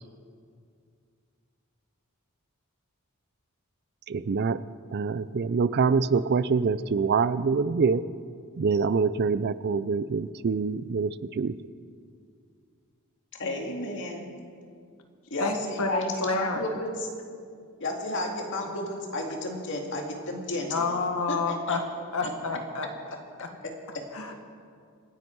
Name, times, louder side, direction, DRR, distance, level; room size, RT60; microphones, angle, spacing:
voice 1, 4.1-4.6 4.9-8.0 8.6-11.5, right 5 dB, 50° right, 16 dB, 0.4 m, -25 dB
voice 2, 13.4-14.3 15.3-17.1 17.8-21.0 21.3-21.8 22.2-22.3 23.9-24.0, left 1 dB, 60° left, 1 dB, 2.2 m, -32 dB
voice 3, 15.4-16.6 20.7-21.8 22.1-22.9 23.4-23.5 24.1-24.4, left 3 dB, 80° left, 5 dB, 1.6 m, -29 dB
26.5 x 9.8 x 4.6 m, 2.3 s
head